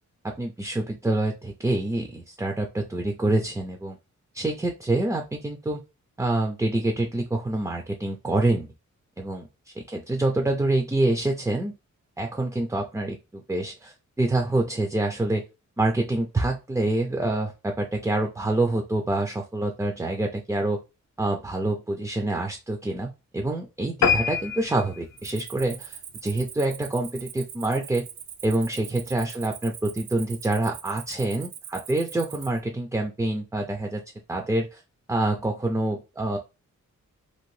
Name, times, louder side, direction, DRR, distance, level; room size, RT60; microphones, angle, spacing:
voice 1, 0.2-4.0 4.3-5.8 6.2-8.7 9.2-9.5 9.8-11.7 12.2-15.4 15.8-20.8 21.2-28.1 28.4-34.0 34.3-34.8 35.1-36.4, right 2 dB, 10° right, 3 dB, 0.3 m, -26 dB
sound 1, 24.0-26.8 27.2-27.4 27.9-28.0 28.3-28.4 28.6-28.7, left 7 dB, 60° left, 0.6 m, -27 dB
Cricket, 25.2-32.6, right 9 dB, 75° right, 0.5 m, -42 dB
2.7 x 2.6 x 3.1 m, 0.27 s
wide cardioid pair, 155°, 30 cm